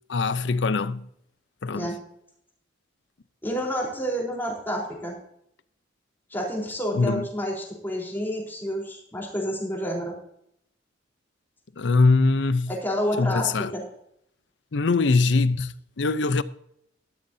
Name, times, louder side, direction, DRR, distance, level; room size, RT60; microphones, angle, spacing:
voice 1, 0.1-1.1 1.6-1.9 6.9-7.3 11.8-12.7 13.2-13.7 14.7-16.4, left 3 dB, 75° left, 0.6 m, -22 dB
voice 2, 3.4-5.1 6.3-10.1 12.7-13.8, equal, 10° left, 3.9 m, -29 dB
13.0 x 13.0 x 2.7 m
head